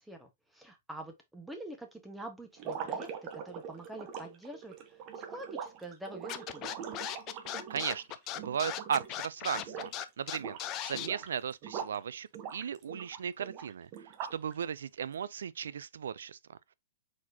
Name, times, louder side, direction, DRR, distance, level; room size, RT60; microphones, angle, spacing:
voice 1, 0.0-6.7, right 1 dB, 5° right, 1.2 m, -46 dB
sound 1, 2.6-9.2 9.5-10.0 10.3-12.0 12.3-14.5, right 7 dB, 35° right, 1.0 m, -42 dB
Scratching (performance technique), 6.3-11.1, left 12 dB, 30° left, 0.5 m, -37 dB
voice 2, 7.7-8.0 8.4-9.9 10.2-13.9 14.3-16.7, right 8 dB, 85° right, 0.4 m, -36 dB
4.6 x 4.2 x 2.7 m
hypercardioid pair, 145°, 0 cm